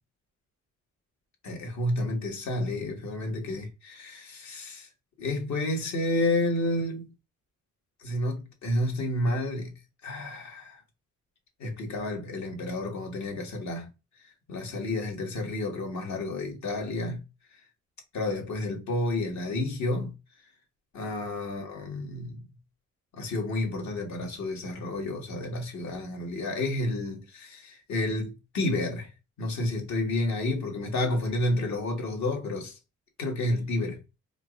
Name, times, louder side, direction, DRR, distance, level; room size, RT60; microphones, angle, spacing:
voice 1, 1.4-4.9 5.2-7.1 8.0-9.7 10.0-10.8 11.6-13.9 14.5-17.2 18.1-20.1 20.9-22.4 23.2-29.1 29.4-32.8 33.2-34.0, left 1 dB, 65° left, 2.0 m, -30 dB
4.4 x 3.9 x 2.6 m
cardioid pair, 90°, 30 cm